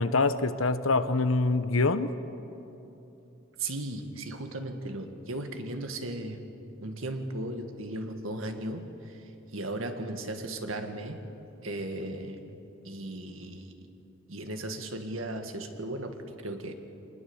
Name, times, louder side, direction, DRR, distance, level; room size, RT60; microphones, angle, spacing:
voice 1, 0.0-2.1, left 3 dB, 90° left, 12 dB, 1.0 m, -25 dB
voice 2, 3.6-6.5 6.8-11.2 11.6-12.6 12.8-13.7 14.3-16.7, right 1 dB, 85° right, 6 dB, 1.9 m, -36 dB
26.5 x 20.0 x 7.2 m, 3.0 s
head